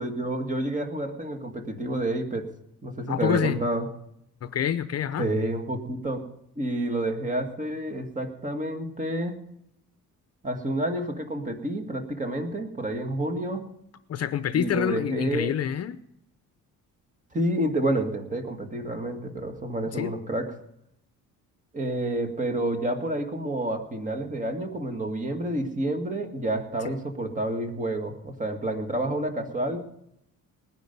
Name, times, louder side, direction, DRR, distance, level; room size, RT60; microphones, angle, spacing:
voice 1, 0.0-2.5 2.8-3.9 5.2-6.3 6.6-9.4 10.4-13.6 14.5-15.5 17.3-20.5 21.7-29.8, right 1 dB, 25° right, 5 dB, 2.1 m, -29 dB
voice 2, 3.1-3.6 4.4-5.3 14.1-16.0 20.0-20.1, left 9 dB, 45° left, 13 dB, 0.7 m, -27 dB
19.5 x 10.5 x 5.4 m, 0.77 s
cardioid pair, 150°, 34 cm